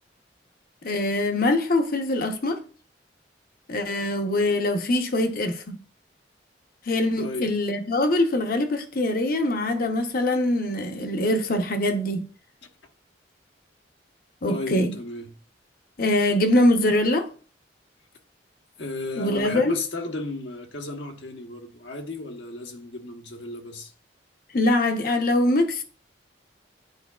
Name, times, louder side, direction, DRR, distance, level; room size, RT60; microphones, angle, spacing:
voice 1, 0.8-2.6 3.7-5.8 6.9-12.3 14.4-14.9 16.0-17.3 19.2-19.7 24.5-25.8, left 1 dB, 55° left, 0.8 m, -23 dB
voice 2, 7.2-7.5 14.5-15.3 18.8-23.9, left 2 dB, 80° left, 1.1 m, -34 dB
9.8 x 4.6 x 2.3 m
head